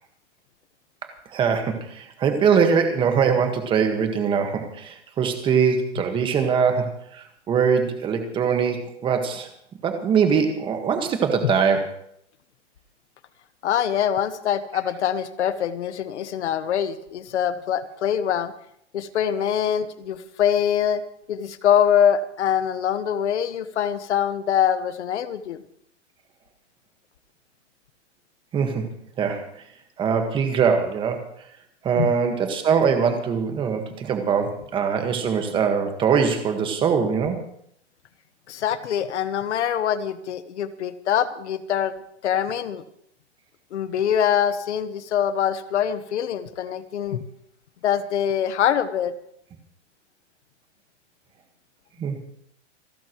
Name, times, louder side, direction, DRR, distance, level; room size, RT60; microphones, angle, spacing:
voice 1, 1.3-9.5 9.8-11.9 28.5-28.8 29.2-29.4 30.0-31.2 31.8-37.4 52.0-52.2, right 6 dB, 15° right, 5 dB, 1.6 m, -22 dB
voice 2, 13.6-18.5 18.9-21.0 21.3-25.6 32.0-32.1 38.5-41.9 42.2-42.8 43.7-47.2 47.8-49.1, left 9 dB, 70° left, 12 dB, 1.4 m, -24 dB
27.5 x 11.5 x 3.1 m, 0.70 s
hypercardioid pair, 165°, 36 cm